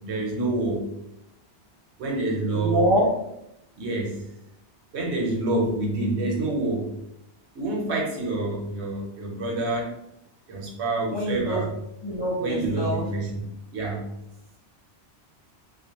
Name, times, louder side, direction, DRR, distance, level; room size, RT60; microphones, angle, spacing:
voice 1, 0.0-0.9 2.0-2.8 3.8-4.2 4.9-7.0 7.5-10.0 10.5-11.7 12.4-13.5 13.7-14.1, right 2 dB, 70° right, -1 dB, 0.9 m, -27 dB
voice 2, 2.5-3.1 11.1-11.6 12.0-13.1, right 1 dB, 30° left, -7 dB, 0.5 m, -24 dB
2.4 x 2.2 x 2.7 m, 0.82 s
omnidirectional pair, 1.2 m